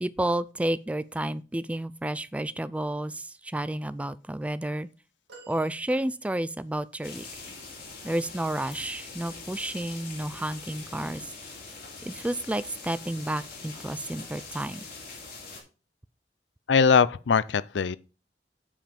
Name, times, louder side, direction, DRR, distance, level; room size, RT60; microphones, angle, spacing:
voice 1, 0.0-4.9 5.5-7.4 8.0-11.3 12.0-14.8, right 1 dB, 10° right, 0.3 m, -31 dB
sound 1, 5.3-6.7 9.1-9.3 10.6-10.7, right 4 dB, 85° right, 2.2 m, -53 dB
sound 2, 7.0-15.6, left 4 dB, 55° left, 3.4 m, -43 dB
voice 2, 16.7-18.0, left 6 dB, 85° left, 0.5 m, -21 dB
8.9 x 5.1 x 5.2 m
head